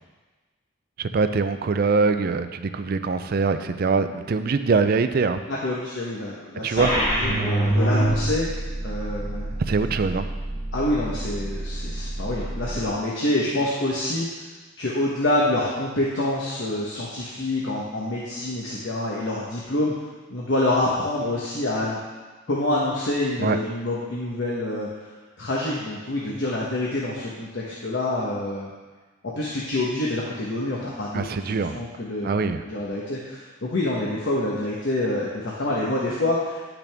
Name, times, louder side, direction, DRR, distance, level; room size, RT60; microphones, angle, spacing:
voice 1, 1.0-5.4 6.6-6.9 9.7-10.3 23.4-23.6 31.1-31.8 32.2-32.6, right 4 dB, 50° right, 10 dB, 0.4 m, -23 dB
voice 2, 5.5-8.5 8.8-9.5 10.7-14.3 14.8-19.9 20.3-22.0 22.5-25.1 25.4-28.7 29.2-36.6, left 1 dB, 65° left, -5 dB, 1.1 m, -27 dB
sound 1, 6.8-12.8, right 1 dB, 20° left, 2.4 m, -26 dB
10.5 x 6.0 x 3.5 m, 1.3 s
head